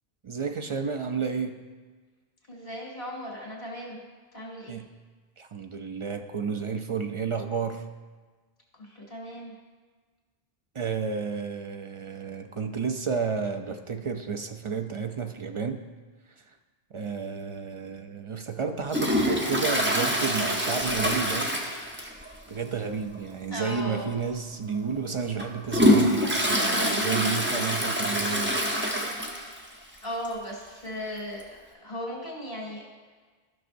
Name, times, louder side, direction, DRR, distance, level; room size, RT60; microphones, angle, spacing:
voice 1, 0.2-1.6 4.7-4.9 5.4-7.9 10.7-15.9 16.9-21.6 22.5-28.6, right 5 dB, 45° right, 6 dB, 0.4 m, -31 dB
voice 2, 2.5-4.0 4.3-4.8 8.8-9.5 23.5-24.1 30.0-32.8, equal, 70° left, -2 dB, 2.6 m, -37 dB
Toilet flush, 18.9-22.3 22.6-22.7 23.1-23.2 24.1-24.2 24.7-29.7 30.0-30.1 30.2-30.3 31.4-31.5, equal, 10° right, 0.8 m, -25 dB
14.0 x 6.1 x 2.6 m, 1.4 s
omnidirectional pair, 1.0 m